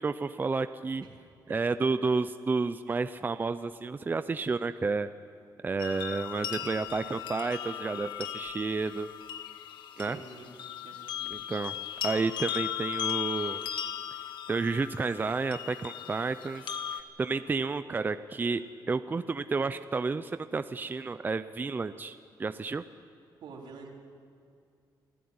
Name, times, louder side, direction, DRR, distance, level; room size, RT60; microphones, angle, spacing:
voice 1, 0.0-1.1 1.5-5.1 5.6-9.1 10.0-10.2 11.3-11.7 12.0-13.6 14.5-16.6 16.9-22.8, right 4 dB, 25° right, 11 dB, 0.6 m, -31 dB
voice 2, 1.0-1.5 9.9-10.5 10.8-11.4 23.4-23.9, right 4 dB, 85° right, -1 dB, 4.1 m, -48 dB
sound 1, 5.8-17.0, left 11 dB, 85° left, 1.5 m, -37 dB
27.0 x 15.0 x 9.7 m, 2.3 s
cardioid pair, 120°, 8 cm